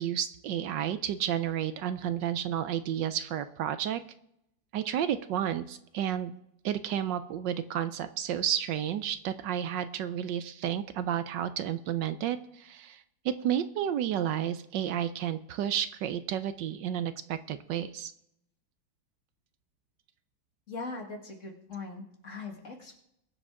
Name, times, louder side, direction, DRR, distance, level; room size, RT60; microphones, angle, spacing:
voice 1, 0.0-4.0 4.7-6.3 6.6-18.1, right 10 dB, 75° right, 11 dB, 1.2 m, -31 dB
voice 2, 20.7-23.0, left 3 dB, 40° left, 2 dB, 2.1 m, -40 dB
22.0 x 7.5 x 3.7 m, 0.79 s
omnidirectional pair, 2.1 m